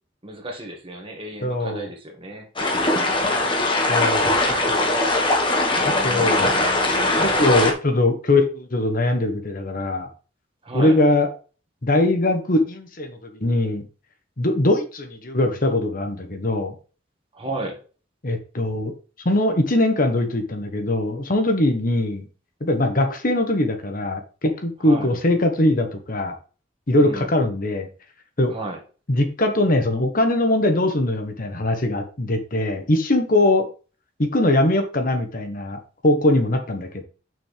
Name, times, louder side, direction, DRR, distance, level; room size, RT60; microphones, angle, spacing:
voice 1, 0.2-2.5 5.7-6.5 10.6-11.0 17.3-17.8 24.8-25.1 27.0-27.3 28.5-28.8, right 2 dB, 30° right, 2 dB, 1.9 m, -34 dB
voice 2, 1.4-1.9 3.9-4.4 5.8-6.5 7.2-10.1 10.7-11.3 11.8-13.9 14.4-16.7 18.2-18.9 19.2-22.3 22.6-26.3 26.9-27.9 28.4-28.5 29.1-33.7 34.2-37.0, left 1 dB, 50° left, 5 dB, 1.3 m, -21 dB
sound 1, 2.6-7.7, left 2 dB, 25° left, 1.4 m, -20 dB
7.0 x 6.2 x 3.4 m, 0.36 s
head